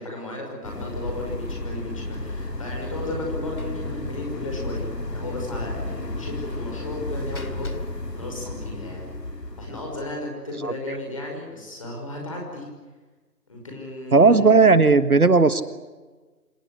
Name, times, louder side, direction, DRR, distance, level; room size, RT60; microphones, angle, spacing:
voice 1, 0.0-7.7 8.1-9.1 9.6-12.7 13.5-14.7, left 2 dB, 20° left, 0 dB, 5.7 m, -35 dB
sound 1, 0.6-10.2, left 1 dB, 85° left, 3.6 m, -33 dB
Slam, 3.6-3.9 4.2-4.3 4.6-4.7 6.5-9.1, left 3 dB, 60° left, 2.6 m, -40 dB
voice 2, 10.6-11.0 14.1-15.6, right 4 dB, 65° right, 13 dB, 1.6 m, -16 dB
27.0 x 18.0 x 9.7 m, 1.3 s
figure-of-eight pair, 175°, 48 cm